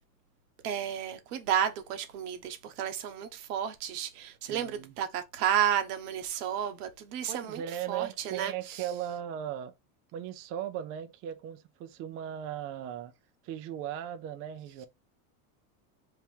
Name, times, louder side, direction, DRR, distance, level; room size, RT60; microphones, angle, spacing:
voice 1, 0.6-7.6 7.9-8.8, right 9 dB, 85° right, 1.0 m, -32 dB
voice 2, 4.5-4.9 7.3-9.7 10.1-13.1 13.4-14.9, right 10 dB, 30° right, 0.4 m, -37 dB
3.5 x 2.9 x 4.3 m
supercardioid pair, 150°, 45 cm